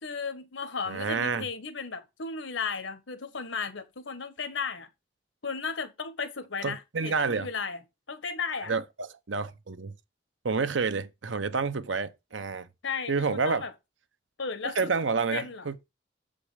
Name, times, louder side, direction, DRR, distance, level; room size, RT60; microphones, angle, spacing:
voice 1, 0.0-4.9 5.4-7.8 8.1-8.7 12.8-13.7 14.4-14.9 15.3-15.7, left 5 dB, 80° left, 1.4 m, -35 dB
voice 2, 0.9-1.5 6.6-7.5 8.7-9.9 10.4-12.7 13.1-13.6 14.8-15.9, right 4 dB, 80° right, 0.8 m, -29 dB
7.5 x 5.3 x 4.9 m
head